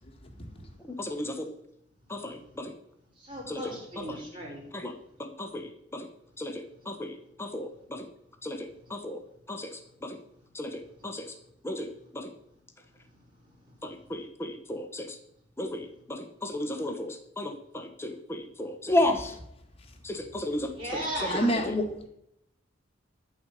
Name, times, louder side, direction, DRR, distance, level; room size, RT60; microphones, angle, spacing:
voice 1, 0.0-0.7 21.3-21.9, equal, 30° left, 3 dB, 1.8 m, -29 dB
voice 2, 0.8-1.5 2.1-2.7 3.5-3.6 4.1-4.2 4.7-4.9 5.2-6.1 6.4-8.1 8.4-9.2 9.5-9.7 10.0-10.2 10.5-11.3 11.6-12.3 13.8-15.2 15.6-19.3 20.0-21.0, left 1 dB, 15° left, 5 dB, 1.4 m, -34 dB
voice 3, 3.2-4.6 20.7-21.5, equal, 25° right, -4 dB, 4.6 m, -36 dB
13.5 x 4.8 x 8.5 m, 0.77 s
head